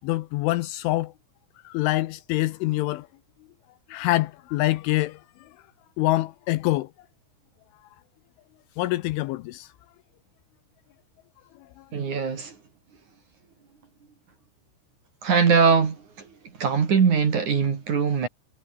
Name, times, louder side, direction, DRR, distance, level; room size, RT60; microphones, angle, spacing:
voice 1, 0.0-1.1 1.6-3.1 3.9-5.5 6.0-6.9 8.8-9.7 11.8-11.9, left 18 dB, 80° left, 3.0 m, -25 dB
voice 2, 11.9-12.6 15.2-16.3 16.6-18.3, right 6 dB, 40° right, 3.6 m, -21 dB
omnidirectional pair, 6.0 m